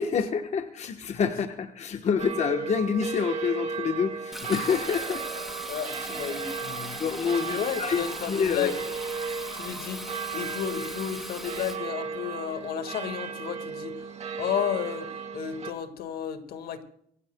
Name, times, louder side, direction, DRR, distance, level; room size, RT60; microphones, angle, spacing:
voice 1, 0.0-5.3 7.0-8.7, left 6 dB, 40° left, 6 dB, 1.1 m, -27 dB
sound 1, 2.2-15.7, right 5 dB, 40° right, 2.1 m, -35 dB
Fill (with liquid), 4.3-11.8, equal, ahead, 3.0 m, -39 dB
voice 2, 5.7-7.0 7.4-8.8 9.5-14.1 14.4-15.1 15.3-16.8, left 9 dB, 65° left, 8 dB, 1.8 m, -33 dB
24.0 x 16.0 x 2.2 m, 0.69 s
cardioid pair, 110°, 17 cm